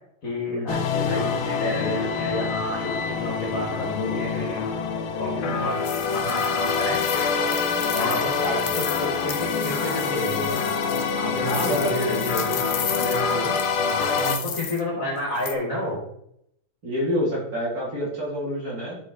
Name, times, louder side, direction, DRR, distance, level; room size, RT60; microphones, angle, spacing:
voice 1, 0.2-4.6 5.2-5.8 6.1-7.0 7.9-10.7 11.2-13.5 13.8-14.1 14.4-16.1, left 1 dB, 40° left, -1 dB, 2.4 m, -30 dB
sound 1, 0.7-14.4, left 5 dB, 90° left, 1.8 m, -26 dB
voice 2, 5.3-5.7 8.0-8.2 11.4-12.0 14.1-14.4 16.8-19.0, equal, 45° right, -5 dB, 3.3 m, -28 dB
sound 2, 5.8-14.8 15.4-15.5, left 9 dB, 60° left, 1.2 m, -35 dB
11.0 x 5.0 x 4.1 m, 0.72 s
omnidirectional pair, 2.2 m